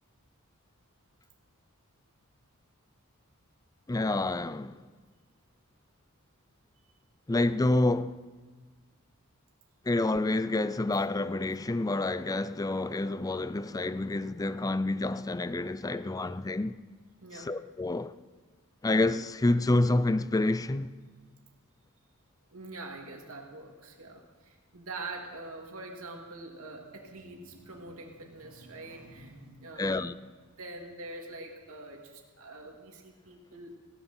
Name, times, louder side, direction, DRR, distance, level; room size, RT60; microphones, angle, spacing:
voice 1, 3.9-4.8 7.3-8.1 9.9-16.8 17.4-18.1 18.8-20.9 29.8-30.1, left 2 dB, 15° left, 0.4 m, -28 dB
voice 2, 15.9-16.3 17.2-17.5 22.5-30.0 30.5-33.8, right 2 dB, 65° right, 2.6 m, -44 dB
18.0 x 16.5 x 4.4 m
head